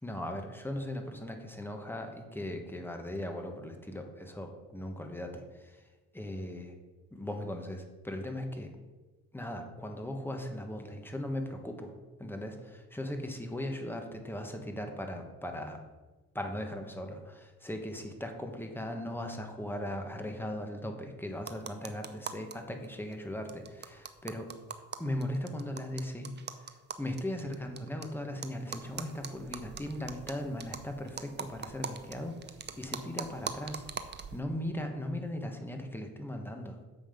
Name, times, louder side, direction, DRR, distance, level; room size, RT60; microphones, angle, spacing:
voice 1, 0.0-5.8 6.1-6.7 7.1-8.7 9.3-11.9 12.2-15.8 16.3-24.5 25.0-26.3 26.6-32.4 32.8-33.8 34.3-36.8, left 1 dB, 5° left, 4 dB, 1.3 m, -38 dB
sound 1, 21.4-22.5 22.8-22.9 23.1-23.2 23.5-28.0 28.4-34.4, right 6 dB, 35° right, 0.7 m, -42 dB
7.6 x 5.7 x 5.1 m, 1.2 s
cardioid pair, 90°, 30 cm